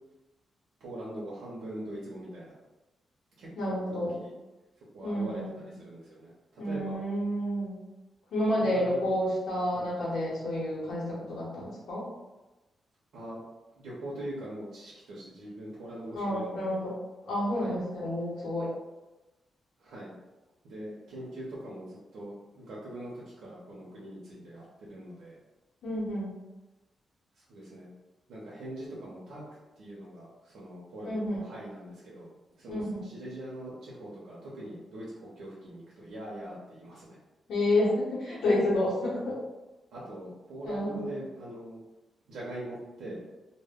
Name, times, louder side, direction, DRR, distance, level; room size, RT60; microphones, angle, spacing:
voice 1, 0.8-2.6 3.4-3.8 4.1-4.3 4.9-7.0 8.6-9.1 9.7-10.0 13.1-13.4 13.8-16.8 17.5-17.8 19.8-20.1 20.6-25.4 27.4-27.9 28.3-29.4 29.8-32.3 32.6-37.2 39.9-41.8 42.3-43.2, right 1 dB, 80° right, -6 dB, 0.6 m, -42 dB
voice 2, 3.6-4.2 5.0-5.5 6.6-7.8 8.3-12.1 16.1-17.0 17.3-18.7 25.8-26.3 31.0-31.4 32.7-33.0 37.5-39.3 40.6-41.1, left 1 dB, 80° left, -6 dB, 0.9 m, -29 dB
2.1 x 2.0 x 3.4 m, 1.1 s
wide cardioid pair, 140°, 0 cm